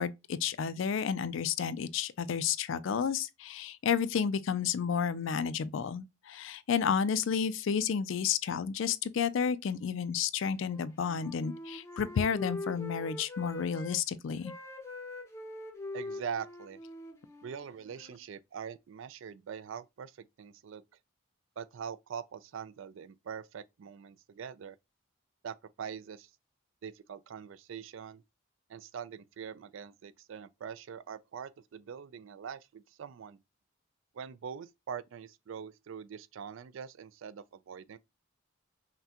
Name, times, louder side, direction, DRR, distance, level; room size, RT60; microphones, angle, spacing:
voice 1, 0.0-14.5, left 7 dB, 70° left, 0.4 m, -31 dB
Wind instrument woodwind instrument, 10.6-14.0 14.3-18.2, left 2 dB, 15° left, 0.6 m, -43 dB
voice 2, 15.9-16.8 17.4-20.8 21.6-24.8 25.4-26.3 26.8-28.2 28.7-33.4 34.1-38.0, right 7 dB, 70° right, 0.3 m, -43 dB
5.7 x 2.2 x 2.8 m
head